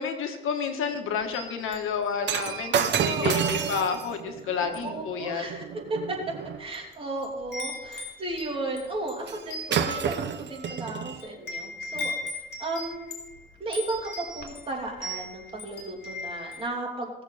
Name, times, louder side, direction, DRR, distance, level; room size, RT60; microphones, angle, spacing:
voice 1, 0.0-5.4, left 6 dB, 90° left, 5 dB, 1.5 m, -30 dB
Wind chime, 1.2-2.5 2.8-3.1 3.7-4.4 4.7-5.0 5.7-5.8 6.5-6.9 7.2-16.7, left 2 dB, 60° left, 3.4 m, -38 dB
Shatter, 2.2-6.6 9.3-9.4 9.7-11.2 11.9-12.1, right 8 dB, 60° right, 0.8 m, -30 dB
voice 2, 2.8-3.7 4.4-5.6 5.9-6.2 6.6-12.1 12.6-13.1 13.6-17.1, right 2 dB, 25° right, -2 dB, 3.1 m, -34 dB
18.5 x 6.9 x 4.2 m, 1.0 s
cardioid pair, 120°, 21 cm